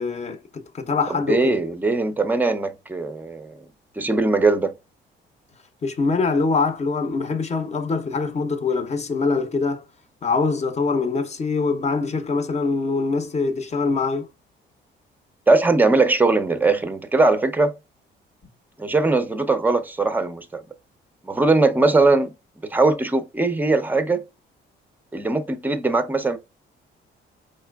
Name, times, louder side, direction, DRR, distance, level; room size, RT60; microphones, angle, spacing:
voice 1, 0.0-1.6 5.8-9.8 10.2-14.3, left 4 dB, 35° left, 0.7 m, -23 dB
voice 2, 1.3-3.6 4.0-4.8 15.5-17.8 18.8-20.6 21.2-22.3 22.6-24.2 25.1-26.4, right 3 dB, 10° right, 0.5 m, -20 dB
4.2 x 3.2 x 2.3 m
cardioid pair, 90°, 20 cm